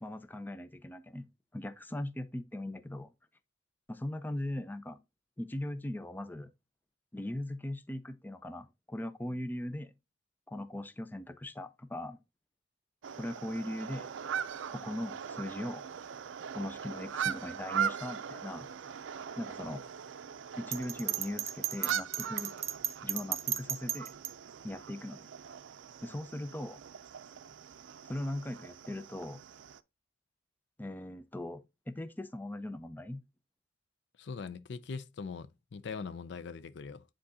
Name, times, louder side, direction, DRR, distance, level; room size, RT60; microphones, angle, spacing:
voice 1, 0.0-1.3 1.5-3.1 3.9-5.0 5.4-6.5 7.1-9.9 10.5-12.2 13.2-14.1 14.7-15.9 16.5-18.7 19.4-19.8 20.6-22.5 23.0-24.1 24.6-25.3 26.0-26.8 28.0-29.4 30.8-33.2, left 1 dB, 10° left, 0.4 m, -39 dB
sound 1, 13.0-29.8, right 8 dB, 85° right, 0.4 m, -40 dB
Bell, 20.7-24.3, right 11 dB, 35° right, 0.6 m, -34 dB
voice 2, 34.2-37.0, left 5 dB, 65° left, 0.4 m, -41 dB
9.5 x 3.8 x 2.7 m
head